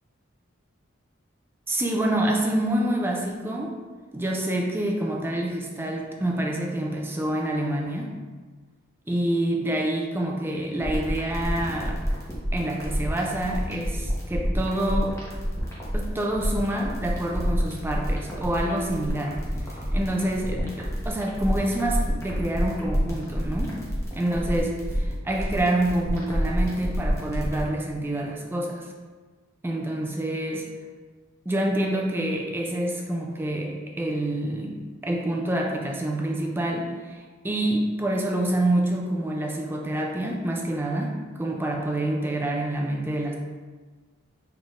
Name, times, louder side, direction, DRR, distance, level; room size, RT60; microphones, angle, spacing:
voice 1, 1.7-3.8 4.1-8.1 9.1-12.0 12.5-15.2 15.9-23.8 24.1-24.7 25.2-28.9 29.6-30.7 31.5-43.3, right 1 dB, 10° right, 0 dB, 0.4 m, -27 dB
sound 1, 10.8-27.6, equal, 15° left, 0.9 m, -28 dB
6.1 x 3.2 x 2.5 m, 1.4 s
head